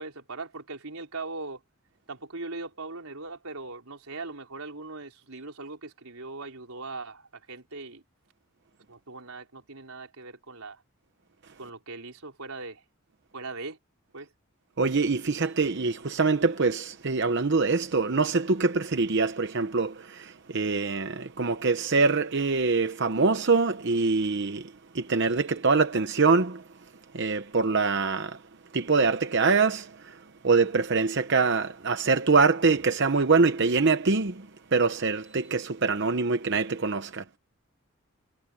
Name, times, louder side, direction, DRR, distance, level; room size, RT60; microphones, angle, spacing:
voice 1, 0.0-1.6 2.1-8.0 8.9-10.8 11.6-12.8 13.3-13.8 14.1-14.3, right 3 dB, 90° right, 4.0 m, -40 dB
voice 2, 14.8-26.6 27.1-28.4 28.7-37.2, right 4 dB, 55° right, 0.9 m, -24 dB
head